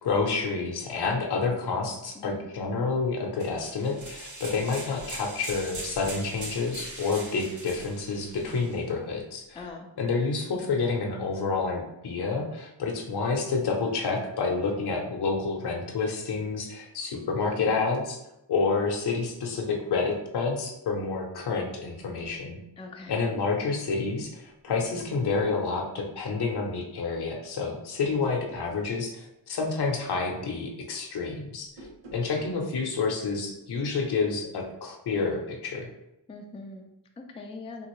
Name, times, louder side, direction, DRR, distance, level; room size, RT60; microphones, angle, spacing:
voice 1, 0.0-9.6 10.0-18.2 18.5-22.6 23.1-31.9 32.1-35.9, left 4 dB, 60° left, 0 dB, 0.8 m, -29 dB
voice 2, 2.1-2.5 9.5-9.9 22.8-23.2 36.3-37.9, left 3 dB, 15° left, 2 dB, 0.4 m, -42 dB
sound 1, 3.4-8.8, right 2 dB, 40° right, 1.0 m, -41 dB
sound 2, 22.0-22.4 23.9-24.3 24.7-25.5 28.0-28.8 31.6-32.6, right 2 dB, 85° right, 0.8 m, -47 dB
3.6 x 2.5 x 3.0 m, 0.87 s
wide cardioid pair, 85°, 44 cm